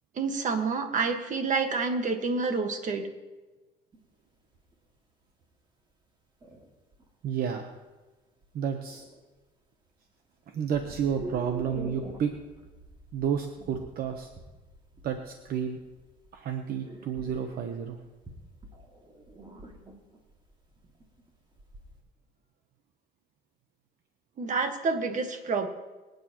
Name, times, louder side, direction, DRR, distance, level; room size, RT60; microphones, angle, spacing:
voice 1, 0.1-3.1 24.4-25.7, right 4 dB, 50° right, 6 dB, 1.6 m, -28 dB
sound 1, 3.9-4.0 4.5-4.7 5.4-5.5 6.4-7.1 8.4-8.5 8.9-9.3 10.7-22.0, right 2 dB, 25° right, 2.2 m, -45 dB
voice 2, 7.2-7.7 8.5-9.1 10.5-12.3 13.1-14.3 15.0-15.8 16.3-18.0, right 7 dB, 65° right, 5 dB, 1.0 m, -31 dB
23.5 x 9.5 x 3.0 m, 1.2 s
cardioid pair, 110°, 17 cm